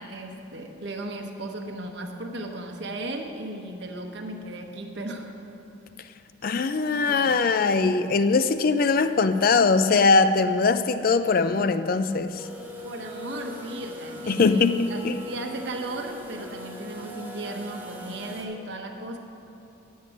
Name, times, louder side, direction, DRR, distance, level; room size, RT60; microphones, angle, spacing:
voice 1, 0.0-5.3 7.1-7.4 12.8-19.2, right 1 dB, 60° right, 2 dB, 1.0 m, -36 dB
voice 2, 6.4-12.5 14.3-15.2, left 4 dB, 45° left, 11 dB, 0.4 m, -21 dB
sound 1, 12.4-18.4, equal, 10° right, 1.1 m, -41 dB
10.5 x 7.4 x 5.9 m, 2.8 s
head